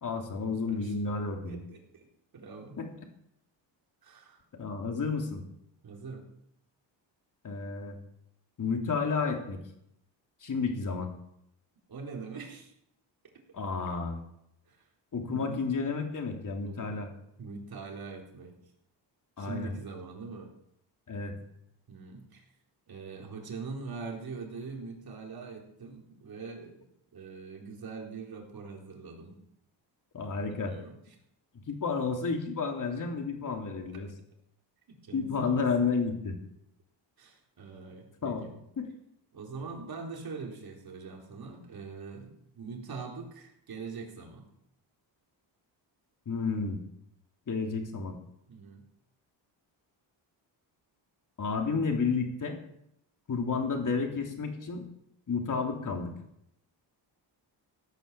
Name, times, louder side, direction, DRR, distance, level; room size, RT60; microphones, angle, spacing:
voice 1, 0.0-1.6 2.8-2.9 4.6-5.4 7.4-8.0 8.6-9.6 10.4-11.1 13.5-14.2 15.1-17.1 19.4-19.7 21.1-21.4 30.1-30.7 31.7-34.1 35.1-36.4 38.2-38.4 38.8-38.9 46.2-46.8 47.5-48.2 51.4-52.6 53.3-54.8 55.3-56.1, left 4 dB, 45° left, 3 dB, 3.3 m, -31 dB
voice 2, 0.5-0.9 1.4-2.1 2.3-2.8 4.0-4.4 5.8-6.3 11.9-12.7 14.7-14.8 15.3-15.6 16.6-17.1 17.4-18.6 19.4-20.5 21.9-22.5 22.9-26.9 27.1-29.4 30.5-31.0 34.9-35.7 37.2-38.5 39.3-44.5 48.5-48.8, right 4 dB, 50° right, 0 dB, 4.2 m, -43 dB
16.5 x 9.2 x 7.6 m, 0.77 s
cardioid pair, 105°, 45 cm